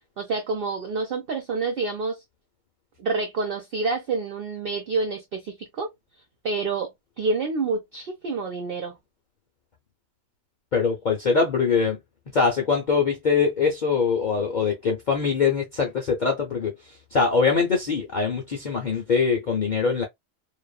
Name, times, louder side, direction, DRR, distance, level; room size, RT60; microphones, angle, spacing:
voice 1, 0.2-2.2 3.0-5.9 6.4-9.0, right 4 dB, 60° right, 0.6 m, -28 dB
voice 2, 10.7-12.0 12.3-16.7 17.1-20.0, left 5 dB, 55° left, 0.5 m, -23 dB
2.6 x 2.4 x 2.3 m
omnidirectional pair, 1.4 m